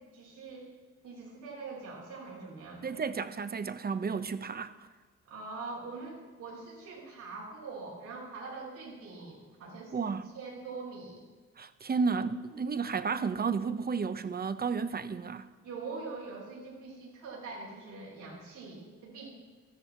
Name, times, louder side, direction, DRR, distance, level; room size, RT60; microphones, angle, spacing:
voice 1, 0.1-0.7 1.0-3.0 5.2-11.3 15.6-19.3, right 4 dB, 90° right, 5.7 m, -43 dB
voice 2, 2.8-4.7 9.9-10.3 11.6-15.5, right 5 dB, 30° right, 0.8 m, -32 dB
16.0 x 13.0 x 4.4 m
cardioid pair, 90°, 30 cm